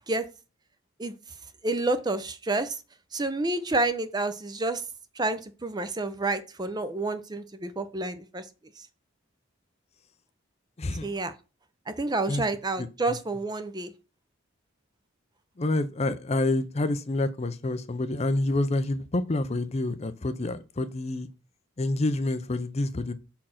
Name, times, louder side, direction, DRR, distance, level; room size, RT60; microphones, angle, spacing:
voice 1, 1.6-2.8 3.1-4.8 5.2-8.4 8.8-8.9 11.0-11.3 11.9-13.9, right 2 dB, 20° right, 0.6 m, -29 dB
voice 2, 10.8-11.1 12.3-12.4 12.8-12.9 15.6-21.3 21.8-23.1, left 2 dB, 30° left, 0.5 m, -28 dB
6.2 x 4.4 x 5.7 m
head